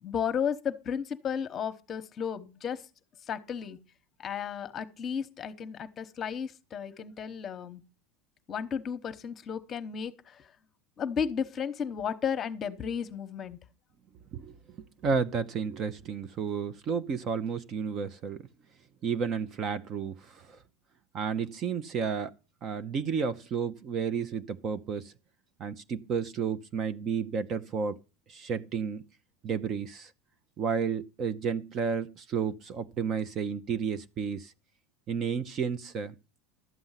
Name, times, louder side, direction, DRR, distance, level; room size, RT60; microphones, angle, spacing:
voice 1, 0.0-2.8 3.3-3.8 4.2-7.8 8.5-10.5 11.0-13.6, left 7 dB, 25° left, 1.1 m, -33 dB
voice 2, 14.3-14.8 15.0-18.4 19.0-20.6 21.1-22.3 22.6-25.1 25.6-28.0 28.3-29.0 29.4-30.1 30.6-34.5 35.1-36.1, right 6 dB, 30° right, 0.6 m, -32 dB
12.0 x 7.8 x 5.7 m
supercardioid pair, 155°, 0 cm